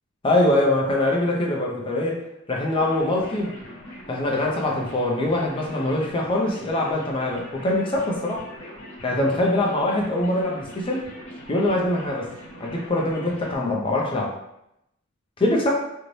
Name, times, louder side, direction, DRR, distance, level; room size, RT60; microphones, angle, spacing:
voice 1, 0.2-2.2 2.5-3.5 4.1-8.4 9.0-11.1 11.5-12.3 12.6-14.3 15.4-15.7, left 1 dB, 25° left, -2 dB, 0.5 m, -23 dB
sound 1, 2.7-13.6, equal, 70° left, 0.9 m, -42 dB
2.6 x 2.0 x 3.1 m, 0.81 s
head